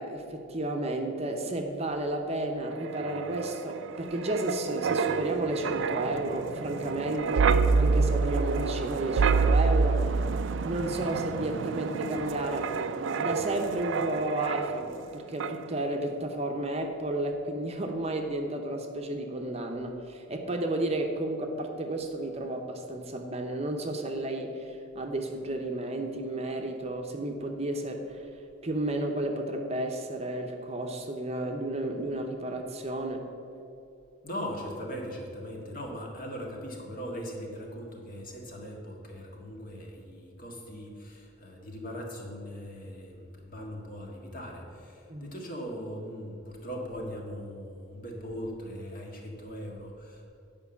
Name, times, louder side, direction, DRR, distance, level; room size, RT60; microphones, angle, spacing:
voice 1, 0.0-10.1 10.6-28.3 28.6-33.3 45.1-45.3, right 1 dB, 30° right, 3 dB, 0.7 m, -32 dB
Wind, 2.7-15.1 15.4-15.6, right 4 dB, 65° right, 0.4 m, -28 dB
voice 2, 34.2-50.3, equal, 45° left, 0 dB, 1.7 m, -40 dB
9.6 x 5.2 x 7.0 m, 2.6 s
head